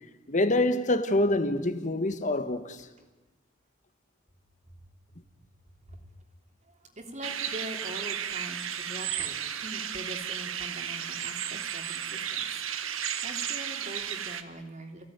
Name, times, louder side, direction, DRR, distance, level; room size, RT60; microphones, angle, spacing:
voice 1, 0.3-2.9, left 1 dB, 40° left, 1.7 m, -26 dB
voice 2, 6.7-15.1, right 1 dB, 35° right, 3.5 m, -43 dB
sound 1, 7.2-14.4, right 9 dB, 85° right, 1.5 m, -34 dB
29.0 x 17.0 x 9.7 m
head